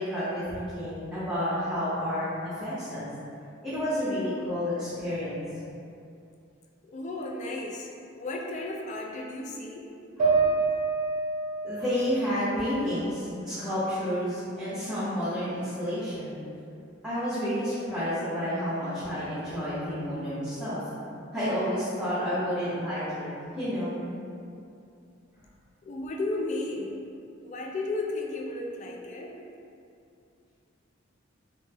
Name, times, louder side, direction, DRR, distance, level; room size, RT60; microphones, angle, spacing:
voice 1, 0.0-3.1 3.6-5.5 10.2-10.3 11.6-16.4 17.0-20.8 21.3-23.3 23.6-24.0, equal, 5° right, -15 dB, 0.7 m, -30 dB
voice 2, 6.8-7.9 8.2-9.9 25.9-27.0 27.4-29.4, left 2 dB, 40° left, -1 dB, 0.3 m, -34 dB
sound 1, 10.2-13.6 14.0-15.0, right 4 dB, 45° right, 0.7 m, -29 dB
3.0 x 2.0 x 3.3 m, 2.5 s
head